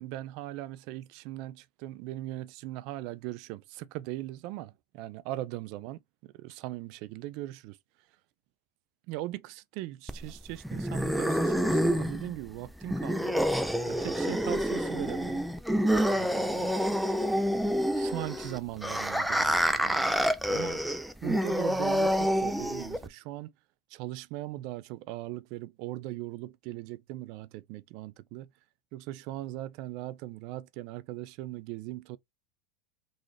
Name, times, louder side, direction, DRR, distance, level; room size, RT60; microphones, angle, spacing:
voice 1, 0.0-7.8 9.1-13.4 13.9-15.4 16.1-16.8 17.9-20.8 21.2-23.5 23.9-28.5 28.9-32.2, right 16 dB, 55° right, 0.4 m, -39 dB
sound 1, 10.1-23.1, equal, ahead, 0.5 m, -28 dB
3.9 x 2.5 x 3.2 m
hypercardioid pair, 95°, 0 cm